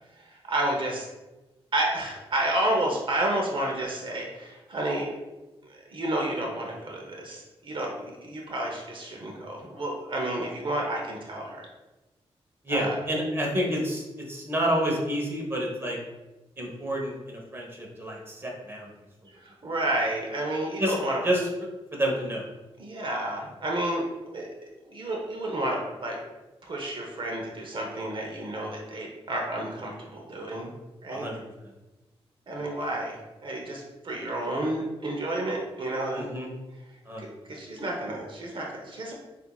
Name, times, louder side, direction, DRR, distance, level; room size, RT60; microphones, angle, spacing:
voice 1, 0.1-1.1 1.7-5.1 5.6-11.7 12.7-13.0 19.3-21.2 22.8-24.0 24.3-24.5 24.9-26.2 26.6-30.7 31.0-31.3 32.5-36.3 37.2-39.1, right 1 dB, 50° right, -1 dB, 0.8 m, -31 dB
voice 2, 12.6-16.0 16.6-18.9 20.8-20.9 21.2-21.4 21.9-22.5 31.1-31.4 36.1-36.5 37.1-37.3, equal, 25° right, -1 dB, 1.1 m, -29 dB
6.9 x 2.7 x 2.3 m, 1.1 s
wide cardioid pair, 100°, 11 cm